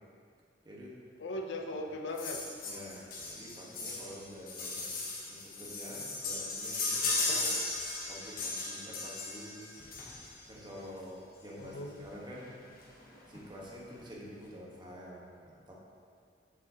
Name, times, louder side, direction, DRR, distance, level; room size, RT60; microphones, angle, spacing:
voice 1, 1.2-2.4 11.6-12.0, left 1 dB, 70° left, 3 dB, 0.6 m, -38 dB
sound 1, 2.2-10.5 11.6-11.7 12.0-12.1 12.3-12.5 12.8-13.4 13.9-14.0, left 3 dB, 50° left, 1.1 m, -36 dB
voice 2, 2.6-4.9 5.2-7.5 8.1-9.6 10.5-12.5 13.3-15.7, equal, 25° right, -4 dB, 1.2 m, -48 dB
7.2 x 7.1 x 2.8 m, 2.2 s
head